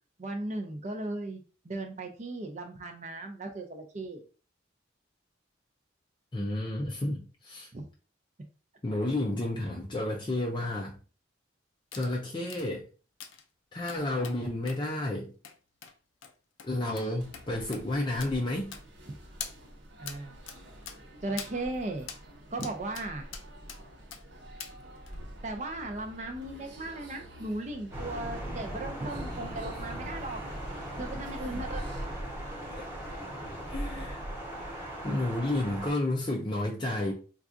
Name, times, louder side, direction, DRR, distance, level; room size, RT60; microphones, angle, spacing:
voice 1, 0.2-4.2 7.7-7.8 20.0-20.4 21.2-22.1 22.5-23.3 25.4-30.4 31.0-31.8, right 2 dB, 35° right, 4 dB, 0.5 m, -37 dB
voice 2, 6.3-7.7 8.8-11.0 11.9-12.8 13.7-15.3 16.6-18.7 32.7-32.9 33.7-34.3 35.0-37.1, left 1 dB, 25° left, -1 dB, 0.4 m, -31 dB
sound 1, 11.9-12.1 12.5-12.7 13.2-13.4 13.9-14.4 14.7-14.8 15.4-15.6 15.8-15.9 16.2-16.3 16.6-16.7 17.0-17.1 17.3-17.5 17.7-17.8 18.2-18.3 18.7-19.1 19.4-19.5 20.1-20.2 20.5-20.6 20.9-21.0 21.4-21.5 22.1-22.2 22.6-23.1 23.3-23.8 24.1-24.2 24.6-24.7 25.1-25.2, left 7 dB, 85° left, 0.5 m, -42 dB
sound 2, 17.2-32.1, right 1 dB, 65° right, 0.9 m, -49 dB
Thunder, 27.9-35.9, right 1 dB, 15° right, 1.0 m, -38 dB
4.6 x 2.3 x 2.5 m, 0.36 s
head